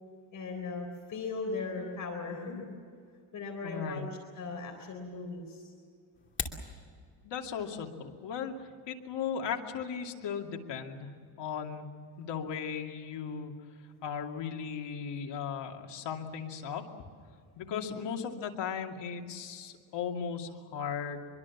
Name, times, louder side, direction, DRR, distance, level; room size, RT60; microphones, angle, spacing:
voice 1, 0.3-2.6 3.3-4.0 4.4-5.7 17.7-18.0, left 3 dB, 40° left, 3 dB, 3.9 m, -38 dB
voice 2, 3.6-4.1 7.2-11.1 11.4-13.5 14.0-16.9 17.6-21.3, left 7 dB, 55° left, 2 dB, 2.6 m, -37 dB
sound 1, 6.1-6.7, left 4 dB, 25° left, 2.7 m, -36 dB
24.5 x 23.5 x 7.3 m, 2.2 s
cardioid pair, 155°, 49 cm